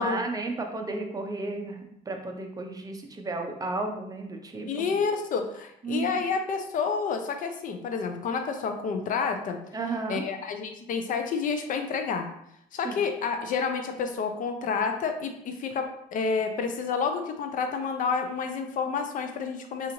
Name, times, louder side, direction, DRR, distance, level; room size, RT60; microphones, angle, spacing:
voice 1, 0.0-4.9 5.8-6.3 9.7-10.2 12.8-13.0, right 3 dB, 20° right, 3 dB, 0.5 m, -33 dB
voice 2, 4.7-9.6 10.1-12.3 12.7-19.9, left 5 dB, 50° left, 6 dB, 0.5 m, -29 dB
3.9 x 2.5 x 2.9 m, 0.74 s
cardioid pair, 110°, 17 cm